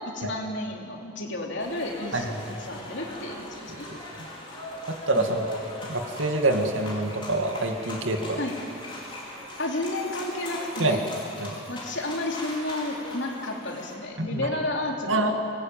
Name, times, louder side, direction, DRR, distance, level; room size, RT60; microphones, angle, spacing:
voice 1, 0.0-3.9 5.2-5.3 8.4-8.6 9.6-11.0 11.7-15.3, left 1 dB, 60° left, 0 dB, 3.4 m, -32 dB
sound 1, 1.6-13.9, left 1 dB, 25° left, 4.8 m, -40 dB
voice 2, 3.7-4.3 4.9-8.4 10.8-11.0 11.4-11.5 14.2-14.5 15.1-15.3, right 2 dB, 75° right, 4 dB, 2.3 m, -27 dB
24.5 x 18.5 x 9.1 m, 2.8 s
head